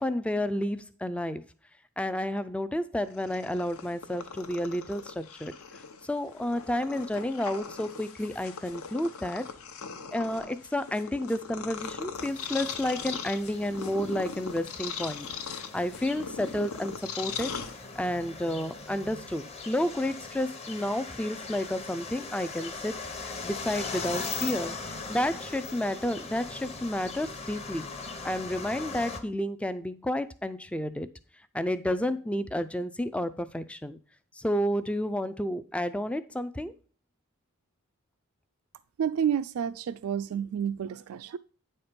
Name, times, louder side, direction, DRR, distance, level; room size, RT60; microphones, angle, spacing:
voice 1, 0.0-1.5 2.0-5.5 6.0-9.5 10.1-15.3 15.7-17.5 17.9-24.8 25.1-27.9 28.2-31.1 31.5-34.0 34.3-36.7, left 1 dB, 5° left, 0.3 m, -31 dB
Purr, 3.1-18.2, left 6 dB, 70° left, 0.8 m, -40 dB
sound 1, 12.2-29.2, left 4 dB, 30° left, 0.9 m, -40 dB
voice 2, 39.0-41.4, right 8 dB, 70° right, 0.3 m, -30 dB
9.2 x 4.3 x 5.1 m
head